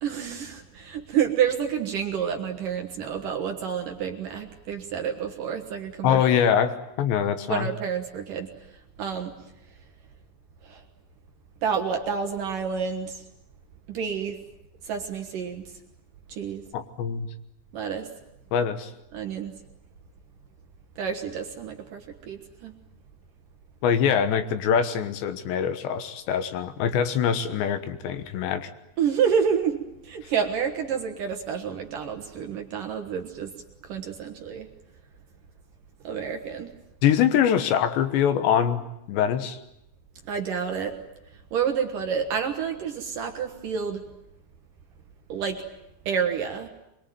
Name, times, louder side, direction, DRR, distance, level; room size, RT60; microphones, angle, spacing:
voice 1, 0.0-6.2 7.5-8.5 9.0-9.3 10.6-10.8 11.6-13.2 13.9-14.4 14.8-15.6 16.3-16.6 17.7-18.1 19.1-19.5 21.0-22.7 29.0-33.5 33.8-34.7 36.0-36.7 40.3-41.0 41.5-44.0 45.3-45.6 46.1-46.7, right 7 dB, 60° right, 4 dB, 2.6 m, -29 dB
voice 2, 6.0-7.7 16.7-17.3 18.5-18.9 23.8-28.7 37.0-39.6, left 8 dB, 75° left, 9 dB, 3.4 m, -24 dB
25.5 x 22.0 x 9.3 m, 0.86 s
omnidirectional pair, 5.3 m